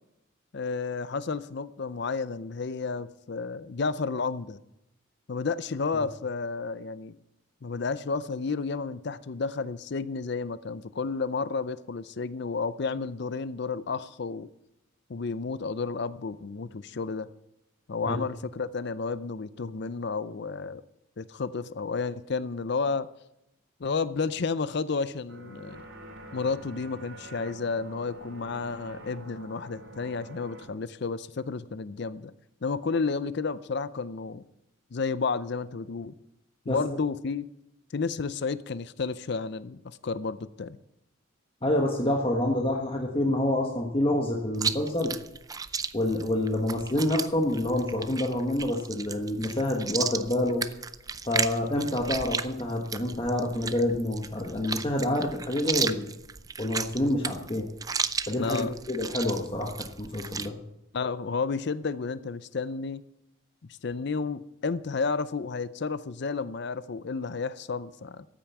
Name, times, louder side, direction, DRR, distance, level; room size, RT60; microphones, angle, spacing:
voice 1, 0.5-4.6 5.3-7.2 7.6-14.5 15.1-17.3 17.9-20.8 21.2-23.1 23.8-25.8 26.3-32.3 32.6-34.4 34.9-36.2 36.7-37.5 37.9-40.8 58.4-58.7 60.9-63.0 63.6-68.3, left 4 dB, 55° left, 15 dB, 0.5 m, -31 dB
sound 1, 25.3-30.7, right 1 dB, 70° right, 2.7 m, -46 dB
voice 2, 41.6-45.1 45.9-50.6 51.3-56.0 56.6-57.7 58.3-60.6, left 1 dB, 25° left, 1 dB, 1.3 m, -27 dB
Chewing mastication, 44.5-60.5, right 5 dB, 15° right, 0.4 m, -34 dB
13.5 x 9.0 x 7.1 m, 0.84 s
head